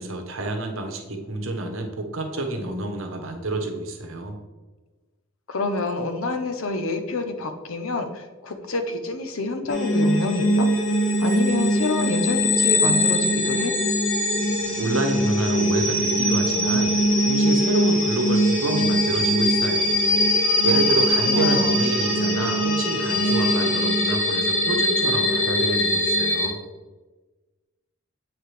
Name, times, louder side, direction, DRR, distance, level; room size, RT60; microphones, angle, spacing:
voice 1, 0.0-4.3 14.8-17.0 17.3-20.0 20.6-26.6, right 2 dB, 75° right, 3 dB, 1.0 m, -28 dB
voice 2, 5.5-10.7 11.2-13.7 20.7-21.7, left 3 dB, 90° left, 7 dB, 0.8 m, -27 dB
sound 1, 9.7-26.5, equal, 40° left, 1.3 m, -21 dB
7.7 x 4.7 x 3.3 m, 1.2 s
head